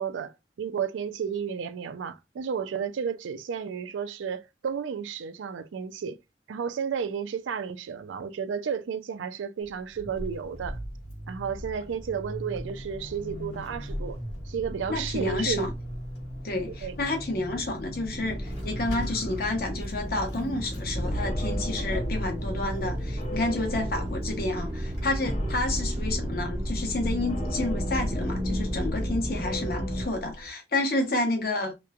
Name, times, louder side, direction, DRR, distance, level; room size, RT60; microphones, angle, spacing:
voice 1, 0.0-6.1 6.5-10.8 11.3-14.2 14.5-15.7 16.7-17.0, right 7 dB, 90° right, 0.4 m, -32 dB
Vehicle / Accelerating revving vroom / Squeak, 9.6-26.8, equal, 85° left, 1.2 m, -37 dB
voice 2, 14.9-15.7 16.4-31.9, left 2 dB, 55° left, 0.8 m, -30 dB
sound 1, 18.1-30.1, equal, 20° right, 0.4 m, -34 dB
sound 2, 21.0-30.5, equal, 35° left, 0.4 m, -35 dB
3.0 x 2.1 x 2.3 m
head